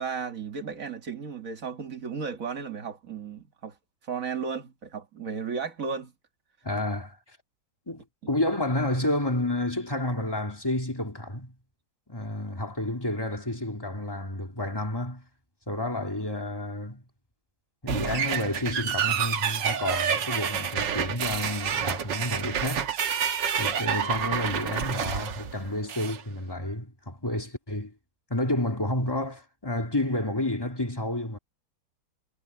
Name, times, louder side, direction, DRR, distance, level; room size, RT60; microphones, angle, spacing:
voice 1, 0.0-3.8 4.0-6.1, right 5 dB, 45° right, 1.8 m, -34 dB
voice 2, 6.6-7.2 7.9-11.6 12.1-15.3 15.7-17.0 17.8-22.9 23.6-27.9 28.3-31.4, left 1 dB, 10° left, 3.0 m, -30 dB
Old Door Drum Loop, 17.9-26.2, right 7 dB, 65° right, 1.8 m, -28 dB
omnidirectional pair, 2.2 m